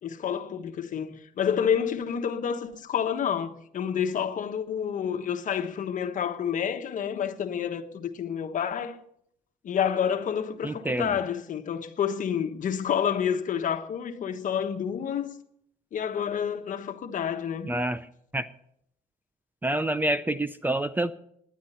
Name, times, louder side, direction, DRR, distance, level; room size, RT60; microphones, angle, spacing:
voice 1, 0.0-9.0 9.6-15.3 15.9-17.7, left 8 dB, 50° left, 1.4 m, -29 dB
voice 2, 10.6-11.2 17.6-18.1 18.3-18.5 19.6-21.1, right 1 dB, 10° right, 0.6 m, -27 dB
18.0 x 10.5 x 5.7 m
cardioid pair, 110°, 17 cm